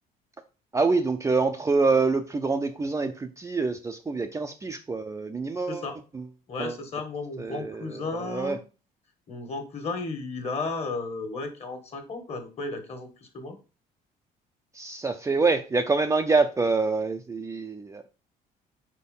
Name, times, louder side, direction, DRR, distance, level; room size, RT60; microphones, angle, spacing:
voice 1, 0.7-5.9 6.1-6.3 6.6-6.8 7.4-8.6 14.7-18.0, right 3 dB, 15° right, 6 dB, 0.5 m, -26 dB
voice 2, 6.5-8.6 9.3-13.1 13.3-13.5, left 3 dB, 40° left, 6 dB, 1.7 m, -34 dB
4.5 x 4.3 x 5.4 m, 0.34 s
cardioid pair, 110°, 17 cm